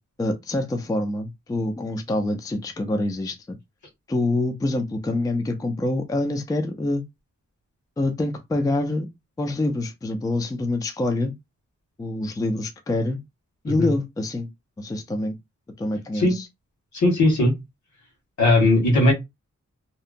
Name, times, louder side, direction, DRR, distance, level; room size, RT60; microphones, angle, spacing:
voice 1, 0.2-3.6 4.1-7.0 8.0-9.1 9.4-11.3 12.0-13.2 13.6-14.5 14.8-15.4 15.8-16.4, left 2 dB, 15° left, 0.3 m, -26 dB
voice 2, 16.9-17.5 18.4-19.1, left 2 dB, 75° left, 1.4 m, -18 dB
2.7 x 2.1 x 2.5 m
wide cardioid pair, 155°, 29 cm